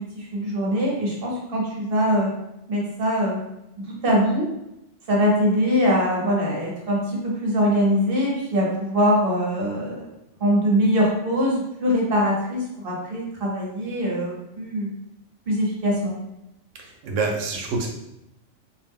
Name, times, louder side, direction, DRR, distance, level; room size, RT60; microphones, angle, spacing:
voice 1, 0.0-2.3 2.7-3.4 3.8-4.5 5.1-10.1 10.4-14.9 15.5-16.1, equal, 55° right, -3 dB, 0.9 m, -22 dB
voice 2, 16.8-17.9, right 4 dB, 90° right, 2 dB, 0.9 m, -27 dB
2.5 x 2.1 x 3.4 m, 0.88 s
omnidirectional pair, 1.2 m